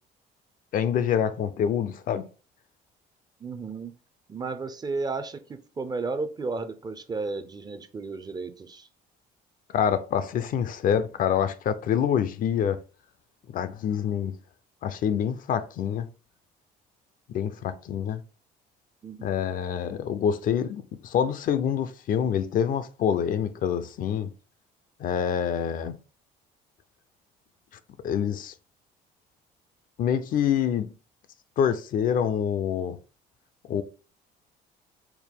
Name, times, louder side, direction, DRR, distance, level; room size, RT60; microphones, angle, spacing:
voice 1, 0.7-2.3 9.7-12.8 13.5-14.4 14.8-16.1 17.3-18.2 19.2-24.3 25.0-25.9 28.0-28.5 30.0-30.9 31.6-33.0 33.7-33.8, left 8 dB, 55° left, 0.4 m, -26 dB
voice 2, 3.4-3.9 4.3-5.4 5.8-8.9 19.0-19.2, right 3 dB, 25° right, 0.5 m, -33 dB
4.6 x 2.1 x 3.5 m
cardioid pair, 110°, 17 cm